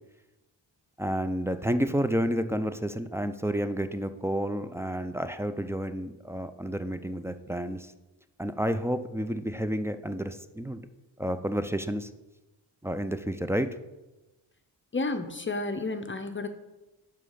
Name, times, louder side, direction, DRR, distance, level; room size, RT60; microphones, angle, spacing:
voice 1, 1.0-7.9 8.4-10.8 11.2-12.1 12.8-13.7, equal, 5° right, 10 dB, 0.3 m, -30 dB
voice 2, 14.9-16.5, left 3 dB, 25° left, 8 dB, 0.7 m, -31 dB
5.7 x 4.9 x 5.5 m, 1.0 s
supercardioid pair, 50°, 49 cm